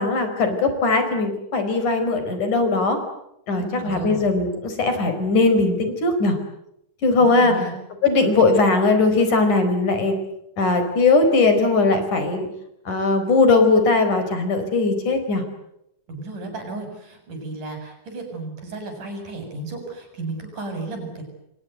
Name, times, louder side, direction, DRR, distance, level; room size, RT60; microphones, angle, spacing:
voice 1, 0.0-3.0 3.5-6.4 7.0-7.5 8.0-10.2 10.6-12.5 12.9-15.4, left 3 dB, 70° left, 8 dB, 6.2 m, -19 dB
voice 2, 3.6-4.2 7.2-7.7 16.1-21.2, right 3 dB, 80° right, 5 dB, 9.1 m, -33 dB
29.0 x 24.5 x 8.1 m, 0.82 s
omnidirectional pair, 3.6 m